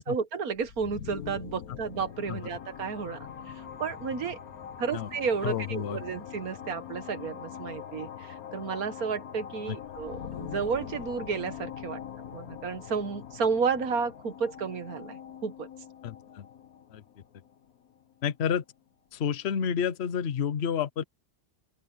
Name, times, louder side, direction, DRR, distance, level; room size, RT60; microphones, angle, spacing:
voice 1, 0.0-3.3 3.8-4.4 4.8-12.0 12.3-15.7, right 5 dB, 90° right, 1.9 m, -32 dB
sound 1, 0.5-18.2, left 8 dB, 85° left, 1.6 m, -43 dB
sound 2, 3.2-9.7, equal, 5° right, 7.4 m, -60 dB
voice 2, 5.4-6.0 9.7-9.8 16.0-16.5 16.9-17.0 18.2-18.6 19.1-21.0, left 8 dB, 55° left, 1.0 m, -30 dB
open air
omnidirectional pair, 1.5 m